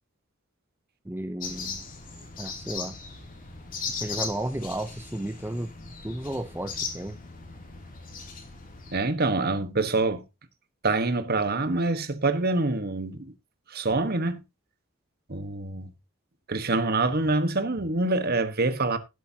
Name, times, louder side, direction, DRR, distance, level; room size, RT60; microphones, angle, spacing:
voice 1, 1.1-1.8 2.4-2.9 4.0-5.7 6.0-7.2, right 1 dB, 10° right, 0.7 m, -33 dB
sound 1, 1.4-9.0, left 5 dB, 40° left, 2.9 m, -38 dB
voice 2, 8.9-10.2 10.8-13.3 13.7-14.4 15.3-15.9 16.5-19.0, right 3 dB, 45° right, 1.3 m, -26 dB
17.0 x 8.3 x 2.8 m
head